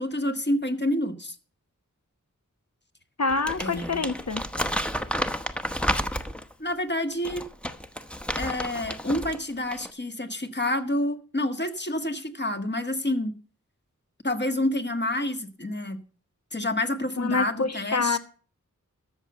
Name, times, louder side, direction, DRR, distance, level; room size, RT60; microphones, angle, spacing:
voice 1, 0.0-1.4 3.6-4.1 6.6-7.4 8.4-13.4 14.2-16.0 16.5-18.2, left 1 dB, 35° left, 1.6 m, -28 dB
voice 2, 3.2-4.4 17.2-18.2, left 4 dB, 55° left, 1.4 m, -26 dB
Crumpling crinkling, 3.3-6.5 7.1-9.4 9.7-9.9, equal, 5° left, 1.0 m, -31 dB
13.5 x 6.8 x 7.9 m
wide cardioid pair, 55°, 31 cm